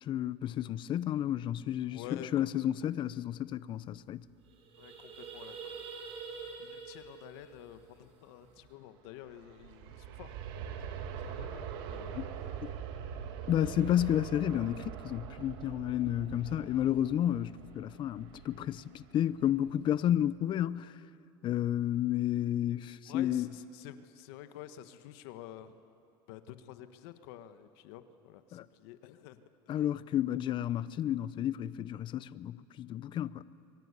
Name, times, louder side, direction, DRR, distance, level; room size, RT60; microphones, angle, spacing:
voice 1, 0.0-4.2 12.1-12.3 12.6-12.7 13.5-21.0 21.4-23.5 28.5-28.7 29.7-33.5, left 11 dB, 40° left, 0.6 m, -31 dB
voice 2, 1.8-2.5 4.8-5.7 6.2-12.3 23.1-25.8 26.3-29.5, left 11 dB, 75° left, 1.4 m, -50 dB
sound 1, 3.4-3.5 3.7-4.0 4.3-8.7, right 5 dB, 50° right, 5.0 m, -46 dB
Aircraft, 9.1-19.9 20.4-20.5, right 8 dB, 75° right, 2.2 m, -43 dB
25.5 x 23.5 x 8.3 m
supercardioid pair, 120°, 13 cm